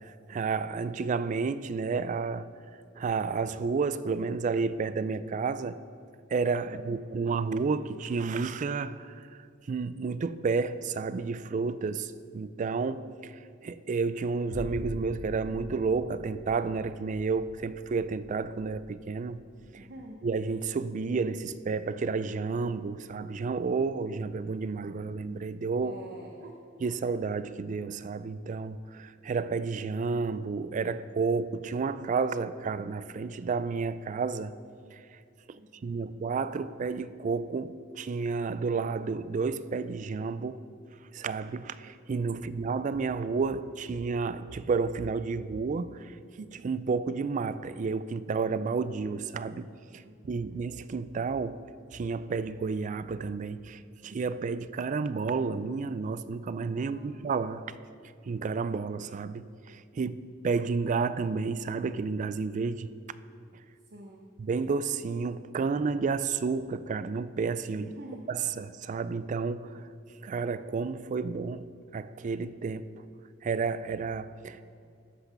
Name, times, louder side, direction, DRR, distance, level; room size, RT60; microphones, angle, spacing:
voice 1, 0.0-2.5 3.0-5.8 6.3-9.3 9.7-13.3 13.6-19.4 19.7-19.9 20.2-25.9 26.8-34.5 34.9-35.0 35.5-40.6 41.1-49.7 49.9-51.6 51.9-57.7 58.2-62.9 64.4-67.9 68.3-69.9 70.2-71.7 71.9-72.9 73.4-74.6, right 4 dB, 40° right, 0.3 m, -31 dB
voice 2, 6.6-7.3 19.8-20.2 25.8-26.6 35.5-36.1 42.3-42.7 50.0-50.7 56.8-57.2 63.8-64.3 67.8-68.3 74.5-74.9, right 1 dB, 55° right, 0.8 m, -48 dB
sound 1, 14.5-23.1 23.5-23.6, equal, 65° left, 1.1 m, -46 dB
13.5 x 5.9 x 5.8 m
head